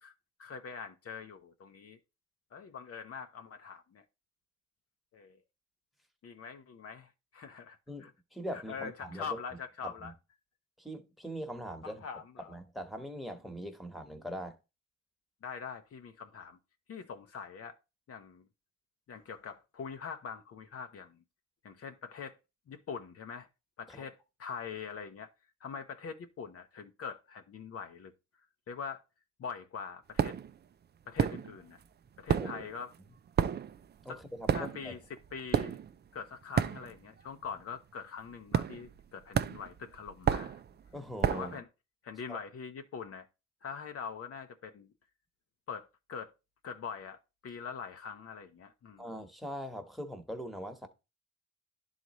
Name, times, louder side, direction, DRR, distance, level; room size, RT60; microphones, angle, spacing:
voice 1, 0.4-2.0 2.5-4.0 5.1-5.4 6.2-8.1 8.5-10.1 11.8-12.6 15.4-16.6 16.9-17.8 18.1-18.5 19.1-21.2 21.6-22.4 22.7-23.5 23.8-25.3 25.6-28.1 28.7-29.0 29.4-30.4 31.1-31.8 32.2-32.9 34.1-34.2 34.5-35.8 36.1-40.6 41.3-41.7 42.0-43.3 43.6-44.9 45.7-46.3 46.6-49.1, left 6 dB, 50° left, 0.9 m, -43 dB
voice 2, 7.9-9.3 9.8-10.1 10.8-12.0 12.5-14.6 23.9-24.1 32.4-32.7 34.0-34.9 40.9-41.5 42.3-42.4 49.0-50.9, equal, ahead, 1.3 m, -42 dB
sound 1, 30.2-30.6 31.2-31.8 32.1-37.2 37.5-37.8 38.5-39.0 39.3-41.6, right 8 dB, 35° right, 0.4 m, -31 dB
11.0 x 4.1 x 3.1 m
cardioid pair, 90°, 30 cm